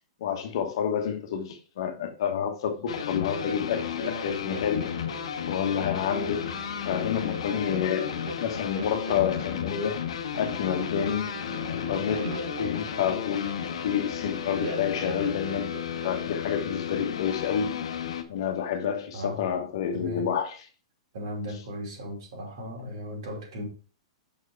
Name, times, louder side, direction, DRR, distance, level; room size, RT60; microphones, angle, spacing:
voice 1, 0.2-4.9 5.5-6.5 6.8-10.0 10.4-11.4 11.7-15.8 16.0-17.8 18.3-20.6, left 8 dB, 50° left, 1.1 m, -29 dB
sound 1, 2.9-18.2, left 9 dB, 80° left, 1.0 m, -33 dB
sound 2, 2.9-16.4, right 2 dB, 75° right, 1.0 m, -41 dB
voice 2, 19.9-20.3 21.1-23.7, left 1 dB, 55° right, 2.7 m, -37 dB
6.2 x 4.6 x 4.6 m
supercardioid pair, 170°, 3 cm